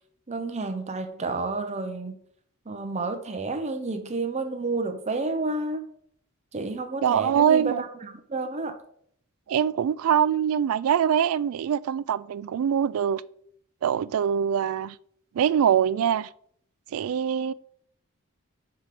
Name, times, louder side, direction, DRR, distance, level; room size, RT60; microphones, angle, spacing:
voice 1, 0.3-2.2 2.7-5.8 6.5-8.8, right 3 dB, 30° right, 0.7 m, -30 dB
voice 2, 7.0-7.8 9.5-13.2 13.8-15.0 15.3-16.3 16.9-17.5, right 8 dB, 80° right, 0.3 m, -23 dB
5.0 x 4.8 x 5.9 m
head